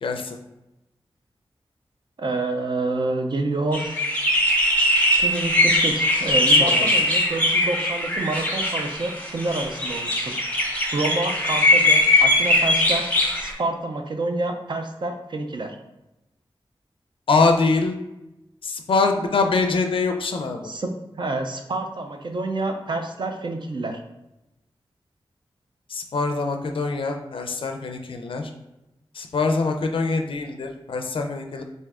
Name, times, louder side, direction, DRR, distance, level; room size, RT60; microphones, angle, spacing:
voice 1, 0.0-0.4 6.5-6.9 17.3-17.9 18.6-20.6 25.9-28.5 29.1-31.6, left 3 dB, 65° left, 4 dB, 0.4 m, -24 dB
voice 2, 2.2-4.0 5.2-10.4 10.9-13.1 13.4-15.8 20.6-24.0, right 2 dB, 55° right, 4 dB, 0.4 m, -28 dB
sound 1, 3.7-13.5, left 1 dB, 15° left, 0.7 m, -20 dB
3.3 x 2.6 x 3.5 m, 0.94 s
wide cardioid pair, 95°, 10 cm